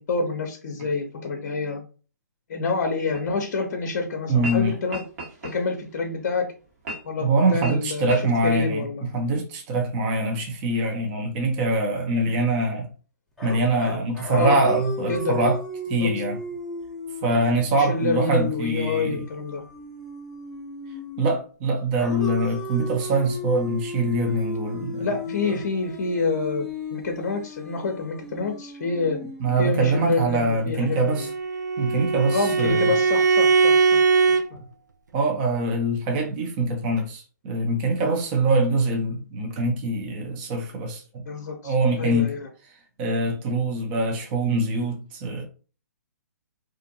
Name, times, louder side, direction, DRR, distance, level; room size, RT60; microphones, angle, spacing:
voice 1, 0.0-1.8 2.5-5.0 5.4-6.5 7.0-9.1 14.3-14.6 15.1-15.4 16.0-16.1 17.8-19.6 25.0-29.2 29.6-31.3 32.3-34.0 34.3-34.6 41.3-42.4, left 3 dB, 55° left, 0.6 m, -27 dB
sound 1, 3.1-3.2 4.3-4.6 4.9-5.9 6.8-7.2 7.6-7.8 8.1-8.2, right 1 dB, 55° right, 1.3 m, -34 dB
voice 2, 4.3-4.8 7.2-8.9 9.1-12.9 13.4-15.6 15.9-16.4 17.2-19.2 21.2-25.1 29.4-31.3 31.8-32.9 34.5-34.6 35.1-41.2 41.6-42.3 43.0-45.4, right 2 dB, 35° right, 0.7 m, -24 dB
sound 2, 13.4-21.4 22.0-30.1, left 1 dB, ahead, 0.6 m, -35 dB
Bowed string instrument, 30.9-34.5, right 4 dB, 80° right, 0.4 m, -20 dB
2.5 x 2.5 x 2.6 m
hypercardioid pair, 135°, 9 cm